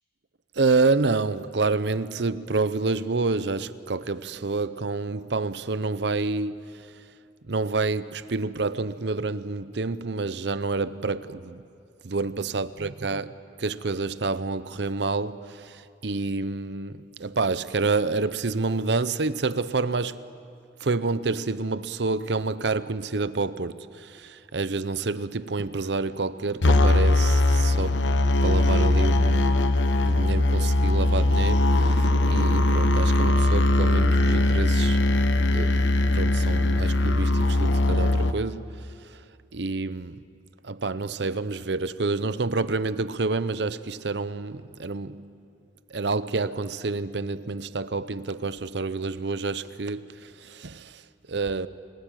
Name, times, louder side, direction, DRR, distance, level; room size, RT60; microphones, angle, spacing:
voice 1, 0.5-6.9 7.5-11.6 12.0-13.3 13.6-20.2 20.8-28.0 28.4-29.6 30.0-35.0 35.5-38.7 39.5-40.2 40.6-45.4 45.9-51.0 51.3-51.7, right 3 dB, 70° right, 0.7 m, -28 dB
sound 1, 26.6-38.3, left 2 dB, 85° left, 1.1 m, -20 dB
29.0 x 20.0 x 9.1 m
head